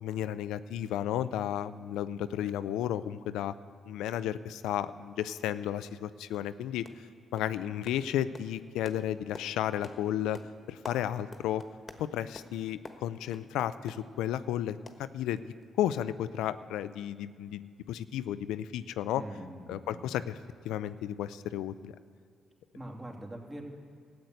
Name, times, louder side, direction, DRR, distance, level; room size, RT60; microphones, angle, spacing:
voice 1, 0.0-3.5 3.9-7.0 7.3-10.4 10.7-11.6 12.0-15.4 15.8-19.2 19.7-20.4 20.6-21.9, left 11 dB, 85° left, 14 dB, 0.4 m, -33 dB
sound 1, 5.9-6.0 6.3-6.5 6.8-7.1 7.4-14.5 14.9-15.6 15.9-16.0 16.4-16.5, left 3 dB, 40° left, 1.2 m, -50 dB
voice 2, 19.1-20.0 22.7-23.6, right 1 dB, 25° right, 0 dB, 2.7 m, -43 dB
13.5 x 7.8 x 9.4 m, 2.2 s
supercardioid pair, 60°, 0 cm